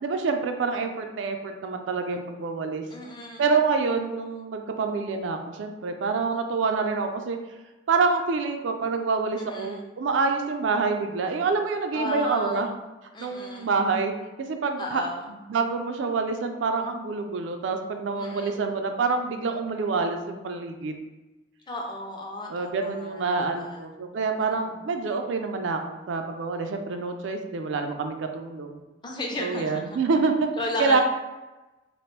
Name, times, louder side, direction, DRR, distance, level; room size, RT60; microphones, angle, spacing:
voice 1, 0.0-2.8 3.4-7.4 7.9-12.7 13.2-15.0 15.3-21.0 22.5-28.8 29.4-30.5 30.8-31.0, right 4 dB, 85° right, 5 dB, 0.4 m, -27 dB
voice 2, 2.9-3.5 9.4-9.8 11.9-12.7 13.1-13.7 14.8-15.3 18.2-18.6 21.7-23.9 24.4-24.8 29.0-30.0 30.6-31.0, left 1 dB, 25° left, 0 dB, 0.4 m, -34 dB
3.0 x 2.4 x 3.2 m, 1.1 s
head